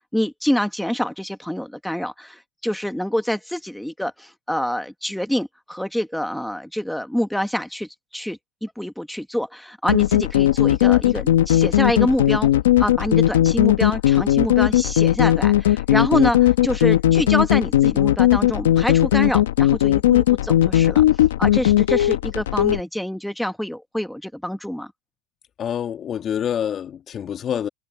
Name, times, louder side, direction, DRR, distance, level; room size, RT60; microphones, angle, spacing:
voice 1, 0.1-12.5 12.8-24.9, equal, ahead, 1.3 m, -26 dB
sound 1, 9.9-22.8, left 13 dB, 85° left, 1.0 m, -17 dB
voice 2, 25.6-27.7, left 9 dB, 35° left, 1.7 m, -26 dB
supercardioid pair, 115°, 0 cm